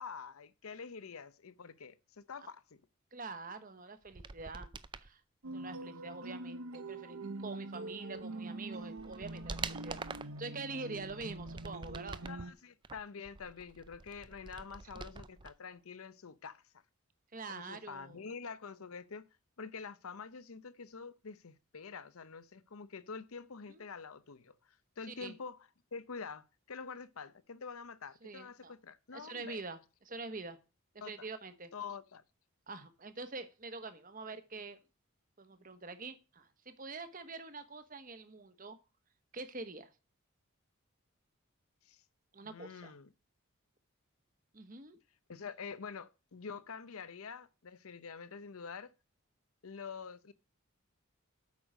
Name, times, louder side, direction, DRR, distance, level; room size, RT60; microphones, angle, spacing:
voice 1, 0.0-2.8 12.2-16.6 17.5-19.3 19.6-25.6 25.9-29.6 31.0-31.3 31.7-32.2 41.8-42.0 42.4-43.1 45.3-48.9 49.6-50.3, left 5 dB, 85° left, 0.7 m, -46 dB
voice 2, 3.1-4.7 5.0-5.2 5.5-10.0 10.4-12.2 14.9-15.0 17.3-18.3 23.7-23.8 25.1-25.3 28.2-28.7 29.1-30.6 31.0-31.7 32.7-34.8 35.4-38.8 39.3-39.9 42.3-42.9 44.5-45.0, right 3 dB, 40° right, 1.1 m, -45 dB
sound 1, 4.1-5.1 8.1-8.2 8.7-10.4 11.0-12.4 12.8-15.5 15.8-15.9, right 4 dB, 20° right, 0.4 m, -45 dB
sound 2, 5.4-12.5, right 2 dB, 80° right, 0.9 m, -44 dB
8.5 x 6.3 x 6.2 m
head